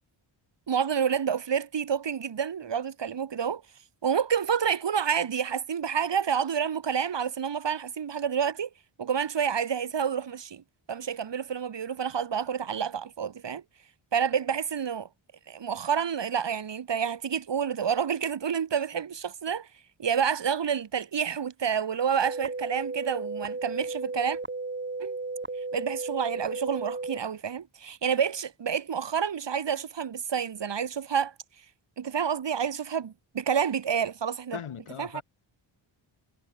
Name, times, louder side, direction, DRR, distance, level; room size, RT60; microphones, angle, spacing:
voice 1, 0.7-3.6 4.0-8.7 9.0-10.6 10.9-13.6 14.1-15.1 15.5-19.7 20.0-24.4 25.0-25.2 25.7-31.3 32.0-34.6 35.0-35.2, right 7 dB, 60° right, 2.1 m, -29 dB
sound 1, 22.2-27.2, right 3 dB, 20° right, 2.0 m, -34 dB
voice 2, 34.5-35.2, left 8 dB, 80° left, 5.1 m, -39 dB
cardioid pair, 90°, 49 cm